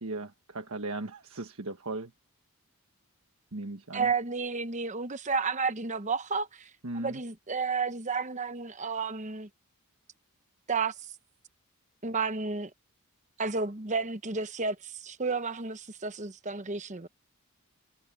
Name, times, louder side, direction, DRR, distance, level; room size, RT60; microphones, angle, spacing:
voice 1, 0.0-2.1 3.5-4.1 6.8-7.2, right 2 dB, 70° right, 1.4 m, -37 dB
voice 2, 3.9-6.7 6.9-9.5 10.7-10.9 12.0-12.7 13.4-17.1, right 4 dB, 35° right, 1.1 m, -31 dB
head